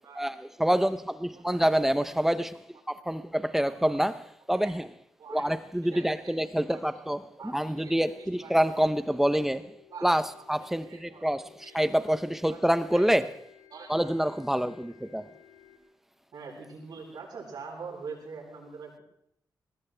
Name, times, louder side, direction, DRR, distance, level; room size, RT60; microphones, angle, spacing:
voice 1, 0.2-2.6 2.9-4.9 5.3-9.6 10.0-10.2 10.5-13.3 13.9-15.2, equal, 5° right, 0.6 m, -27 dB
voice 2, 1.3-1.7 2.2-2.3 2.9-3.2 3.7-4.0 4.6-4.8 5.2-5.5 5.8-7.0 7.4-8.7 9.1-9.3 9.9-10.1 10.4-11.3 11.6-11.7 12.5-12.6 12.9-13.1 13.7-14.4 16.3-19.0, right 5 dB, 70° right, 7.9 m, -45 dB
sound 1, 7.7-15.8, left 10 dB, 75° left, 4.0 m, -57 dB
22.0 x 19.5 x 3.3 m
wide cardioid pair, 150°, 7 cm